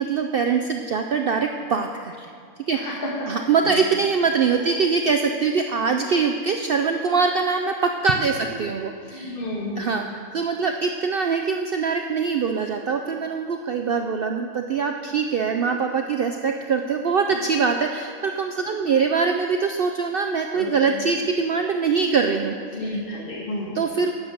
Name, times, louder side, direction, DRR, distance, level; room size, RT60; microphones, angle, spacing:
voice 1, 0.0-2.3 2.7-3.0 3.3-9.4 9.8-22.5 22.8-23.0 23.7-24.1, right 5 dB, 65° right, 5 dB, 0.5 m, -23 dB
voice 2, 9.1-9.9 15.5-15.6 17.3-17.6 18.6-18.8 20.5-21.0 22.3-22.4 22.7-23.8, left 1 dB, 40° left, -5 dB, 2.1 m, -32 dB
9.9 x 7.3 x 6.4 m, 2.4 s
omnidirectional pair, 1.5 m